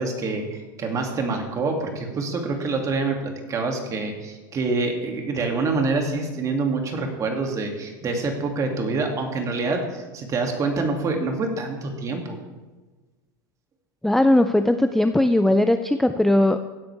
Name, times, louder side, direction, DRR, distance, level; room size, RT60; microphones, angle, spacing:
voice 1, 0.0-12.4, right 3 dB, 30° right, 2 dB, 2.5 m, -26 dB
voice 2, 14.0-16.7, left 1 dB, 5° left, 8 dB, 0.4 m, -19 dB
16.0 x 10.5 x 3.5 m, 1.3 s
hypercardioid pair, 110°, 11 cm